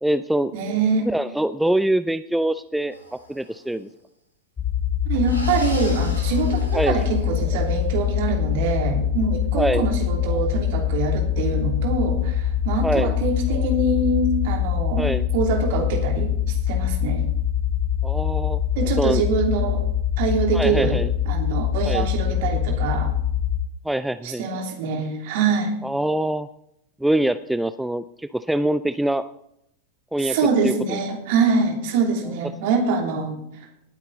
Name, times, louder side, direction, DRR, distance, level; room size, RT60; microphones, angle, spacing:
voice 1, 0.0-0.5 1.0-3.9 6.7-7.0 9.6-9.9 12.8-13.1 15.0-15.2 18.0-18.6 19.0-19.2 20.5-21.1 21.8-22.1 23.8-24.5 25.8-26.5 27.0-29.2 30.1-30.4 30.6-31.0 32.2-32.3, right 1 dB, 5° right, 13 dB, 0.4 m, -24 dB
voice 2, 0.5-1.1 5.0-17.3 18.7-19.8 20.2-21.0 21.3-23.1 24.2-25.7 30.2-33.4, right 4 dB, 50° right, 2 dB, 3.0 m, -24 dB
sound 1, 2.9-3.6 5.2-7.8, equal, 85° left, 3.3 m, -39 dB
sound 2, 4.6-23.6, left 9 dB, 20° left, 1.3 m, -24 dB
19.0 x 8.3 x 4.0 m, 0.77 s
figure-of-eight pair, 90°, 0 cm